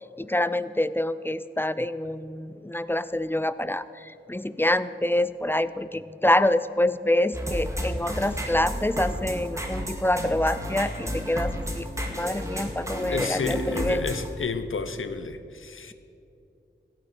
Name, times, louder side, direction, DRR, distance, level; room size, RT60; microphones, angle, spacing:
voice 1, 0.2-14.0, left 1 dB, 10° left, 15 dB, 0.4 m, -26 dB
sound 1, 7.3-14.3, equal, 15° right, 1.9 m, -32 dB
voice 2, 13.0-15.9, left 4 dB, 90° left, 11 dB, 0.7 m, -31 dB
16.0 x 8.8 x 6.7 m, 2.6 s
wide cardioid pair, 60°, 20 cm